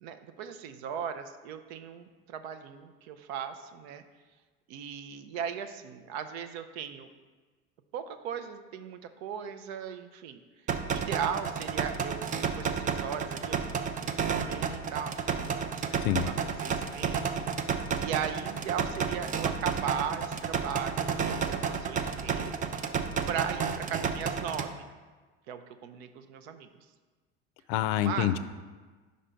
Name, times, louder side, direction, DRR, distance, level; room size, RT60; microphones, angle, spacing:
voice 1, 0.0-4.0 4.7-7.1 7.9-10.4 10.9-12.3 12.5-15.9 16.2-16.3 16.6-17.6 18.0-22.6 23.3-24.7 25.5-26.7 28.0-28.3, right 8 dB, 75° right, 9 dB, 0.6 m, -37 dB
sound 1, 10.7-24.7, right 6 dB, 25° right, 0.4 m, -31 dB
voice 2, 15.9-16.3 27.7-28.4, left 11 dB, 70° left, 12 dB, 0.5 m, -27 dB
5.2 x 4.4 x 5.1 m, 1.4 s
hypercardioid pair, 90°, 32 cm